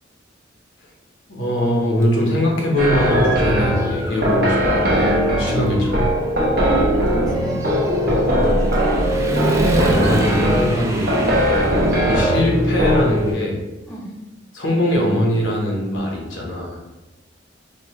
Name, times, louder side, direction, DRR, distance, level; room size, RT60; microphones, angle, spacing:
voice 1, 1.3-6.1 9.7-11.2 12.0-13.6 14.5-16.8, left 1 dB, 80° left, -1 dB, 1.0 m, -21 dB
Human voice / Motorcycle, 2.0-2.1 2.6-4.4 4.7-13.3, right 1 dB, 15° right, 0.3 m, -28 dB
sound 1, 2.8-13.2, equal, 55° right, 0.9 m, -19 dB
voice 2, 5.4-5.9 6.6-7.7 8.3-9.0 11.5-11.7 13.9-14.1, right 1 dB, 5° left, -6 dB, 0.7 m, -29 dB
5.1 x 2.3 x 3.0 m, 1.0 s
head